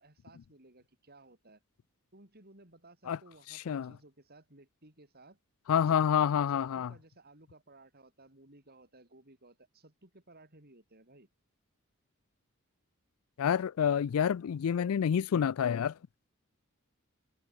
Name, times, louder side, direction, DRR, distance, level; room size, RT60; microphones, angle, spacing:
voice 1, 0.0-1.6 2.1-5.4 5.9-6.0 6.5-11.3, right 2 dB, 45° right, 6.8 m, -58 dB
voice 2, 5.7-6.9 13.4-15.9, left 8 dB, 75° left, 0.4 m, -28 dB
head